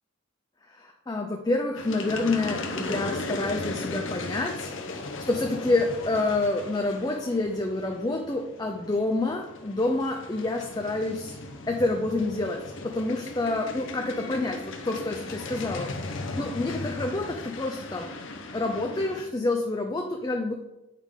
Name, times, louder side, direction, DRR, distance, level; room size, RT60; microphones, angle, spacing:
voice 1, 0.7-11.3 11.7-15.9 16.2-18.1 18.5-20.5, left 2 dB, 20° left, 2 dB, 0.4 m, -28 dB
sound 1, 1.7-19.2, left 2 dB, 55° left, 0.8 m, -37 dB
8.2 x 5.1 x 3.7 m, 0.94 s
head